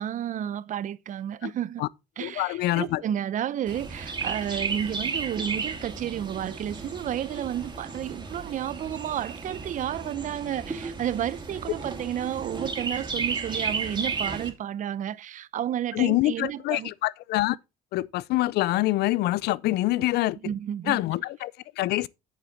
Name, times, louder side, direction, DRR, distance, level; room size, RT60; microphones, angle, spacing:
voice 1, 0.0-1.8 2.2-16.9 20.4-21.0, right 10 dB, 50° right, 0.6 m, -31 dB
voice 2, 2.2-3.0 15.9-17.6 17.9-20.4 20.9-22.1, left 17 dB, 80° left, 0.5 m, -25 dB
Chirp tweet, 3.7-14.5, right 4 dB, 25° right, 2.5 m, -34 dB
8.2 x 7.2 x 4.0 m
cardioid pair, 110°, 17 cm